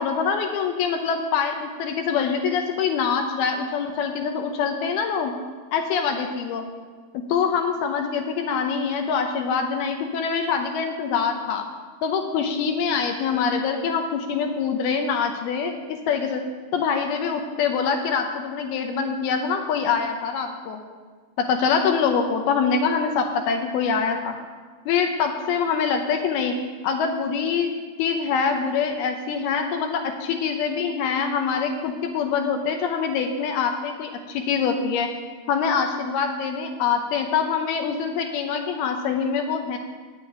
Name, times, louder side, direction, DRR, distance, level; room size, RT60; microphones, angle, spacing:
voice 1, 0.0-5.3 5.7-6.6 7.1-11.7 12.0-15.7 16.1-16.4 16.7-20.8 21.4-24.3 24.9-26.6 26.8-27.7 28.0-35.1 35.5-39.8, left 6 dB, 85° left, 4 dB, 2.8 m, -24 dB
9.0 x 7.5 x 9.1 m, 1.5 s
omnidirectional pair, 4.4 m